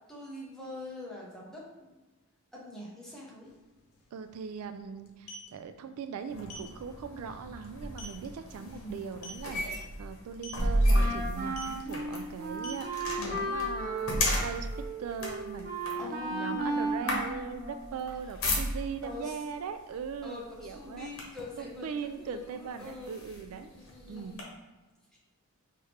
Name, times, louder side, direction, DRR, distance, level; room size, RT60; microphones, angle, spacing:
voice 1, 0.1-2.0 2.5-3.5 8.6-9.0 16.0-17.2 19.0-19.4 20.2-23.2 23.7-24.4 25.1-25.2, left 2 dB, ahead, -5 dB, 0.9 m, -43 dB
sound 1, 3.4-3.5 3.8-4.0 5.0-5.5 6.5-6.7 7.1-7.3 7.6-7.7 8.0-8.3 9.1-9.5 10.3-10.7 11.5-11.8 12.5-13.8, equal, 85° left, 0.8 m, -44 dB
voice 2, 4.1-14.7 15.0-15.7 15.9-21.1 21.6-23.7 24.1-24.4, right 6 dB, 75° right, 10 dB, 0.3 m, -40 dB
sound 2, 6.3-19.1 20.0-20.2 20.6-21.6 22.2-22.3 22.8-24.4, equal, 65° left, 1.0 m, -33 dB
Wind instrument woodwind instrument, 10.9-18.1, right 2 dB, 40° right, 0.8 m, -35 dB
4.8 x 2.9 x 3.2 m, 1.2 s
head